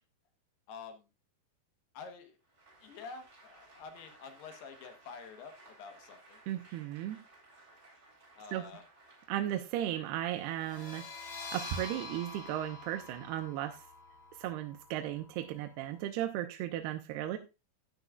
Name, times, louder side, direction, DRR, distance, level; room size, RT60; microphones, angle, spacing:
voice 1, 0.7-1.1 1.9-2.4 2.8-6.4 8.3-8.8, left 5 dB, 75° left, 6 dB, 3.0 m, -48 dB
Applause, 2.4-10.2, right 2 dB, 15° right, 3.4 m, -59 dB
voice 2, 6.5-7.2 8.5-8.6 9.3-11.3 11.5-13.8 14.4-17.4, right 12 dB, 80° right, 6 dB, 2.6 m, -36 dB
sound 1, 10.5-16.0, left 2 dB, 35° left, 2.7 m, -47 dB
12.0 x 10.5 x 2.4 m, 0.27 s
omnidirectional pair, 5.0 m